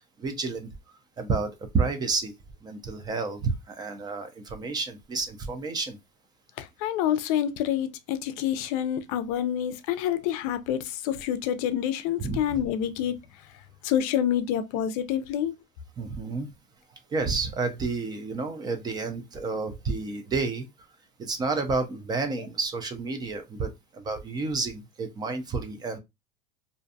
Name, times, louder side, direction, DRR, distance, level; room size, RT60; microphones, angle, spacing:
voice 1, 0.2-0.7 1.2-1.5 1.7-2.3 2.6-6.0 12.2-12.4 16.0-16.5 17.1-20.7 21.2-26.0, right 4 dB, 20° right, 0.3 m, -30 dB
voice 2, 6.6-13.2 13.8-15.5, left 10 dB, 65° left, 0.4 m, -27 dB
2.5 x 2.2 x 2.6 m
supercardioid pair, 145°, 20 cm